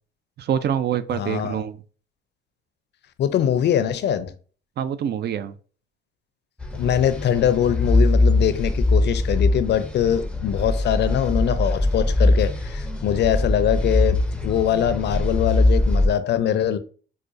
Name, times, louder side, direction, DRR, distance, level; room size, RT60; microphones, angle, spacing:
voice 1, 0.4-1.8 4.8-5.6, right 9 dB, 55° right, 0.4 m, -25 dB
voice 2, 1.1-1.6 3.2-4.3 6.7-16.8, left 9 dB, 60° left, 0.5 m, -22 dB
sound 1, 6.6-16.1, left 2 dB, 5° left, 0.5 m, -21 dB
4.8 x 2.2 x 2.5 m
cardioid pair, 90°, 20 cm